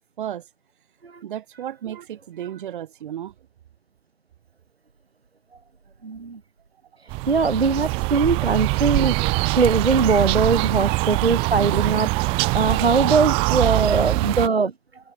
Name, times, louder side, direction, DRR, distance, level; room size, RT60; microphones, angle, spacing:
voice 1, 1.2-3.3 13.6-13.7, right 10 dB, 55° right, 6.5 m, -33 dB
voice 2, 6.0-6.4 7.3-14.7, right 4 dB, 85° right, 4.4 m, -21 dB
sound 1, 7.1-14.5, right 27 dB, 20° right, 0.5 m, -23 dB
figure-of-eight pair, 125°, 30 cm